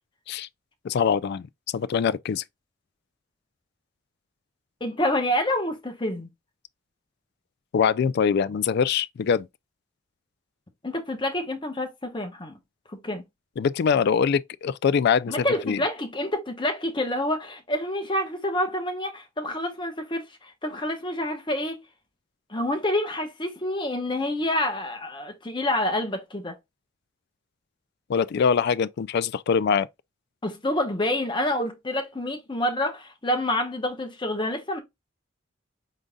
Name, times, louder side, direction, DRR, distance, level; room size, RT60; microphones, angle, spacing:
voice 1, 0.8-1.5 1.7-2.4 7.7-9.5 13.6-15.8 28.1-29.9, left 6 dB, 55° left, 0.3 m, -23 dB
voice 2, 4.8-6.3 10.8-12.6 12.9-13.2 15.3-21.8 22.5-26.5 30.4-34.8, left 1 dB, 25° left, 1.0 m, -28 dB
5.0 x 3.9 x 2.3 m
head